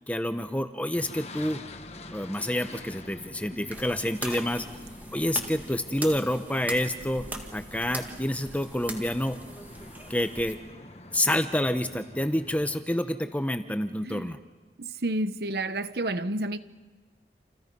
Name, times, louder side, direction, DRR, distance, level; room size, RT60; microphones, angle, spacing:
voice 1, 0.1-1.6 2.1-4.6 5.1-7.3 7.5-9.4 10.1-10.6 11.1-14.4, left 1 dB, 10° left, 1.0 m, -28 dB
sound 1, 0.9-12.8, left 2 dB, 35° left, 1.5 m, -47 dB
sound 2, 2.6-10.0, equal, 30° right, 6.2 m, -50 dB
sound 3, 3.7-10.5, right 1 dB, 10° right, 2.0 m, -41 dB
voice 2, 14.8-16.6, right 1 dB, 65° right, 1.0 m, -30 dB
29.0 x 28.5 x 5.5 m
head